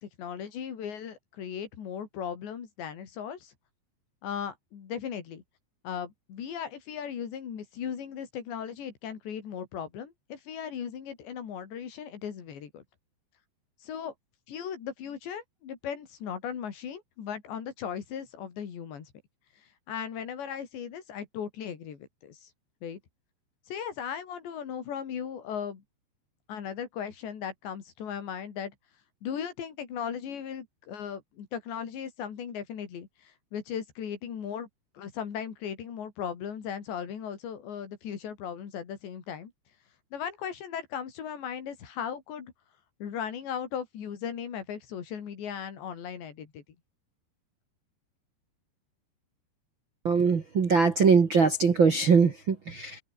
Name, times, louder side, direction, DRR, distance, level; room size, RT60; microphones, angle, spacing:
voice 1, 0.0-3.5 4.2-5.4 5.8-12.8 13.8-14.1 14.5-19.1 19.9-22.5 22.8-23.0 23.7-25.8 26.5-28.7 29.2-34.7 35.0-39.5 40.1-42.5 43.0-46.6, left 8 dB, 80° left, 5.7 m, -37 dB
voice 2, 50.0-53.0, right 5 dB, 45° right, 1.6 m, -22 dB
omnidirectional pair, 5.0 m